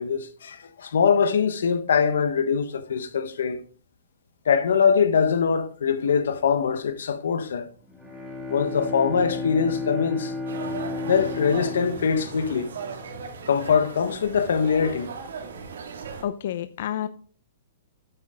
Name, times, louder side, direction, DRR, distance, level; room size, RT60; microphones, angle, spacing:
voice 1, 0.0-3.6 4.4-7.7 8.5-10.3 11.1-12.7 13.5-15.1, left 6 dB, 90° left, 1.4 m, -23 dB
Bowed string instrument, 7.8-13.5, left 3 dB, 5° right, 1.9 m, -33 dB
sound 1, 10.5-16.2, right 5 dB, 80° right, 2.4 m, -37 dB
voice 2, 16.2-17.1, left 10 dB, 50° left, 0.6 m, -29 dB
10.0 x 8.7 x 3.8 m
hypercardioid pair, 175°, 0 cm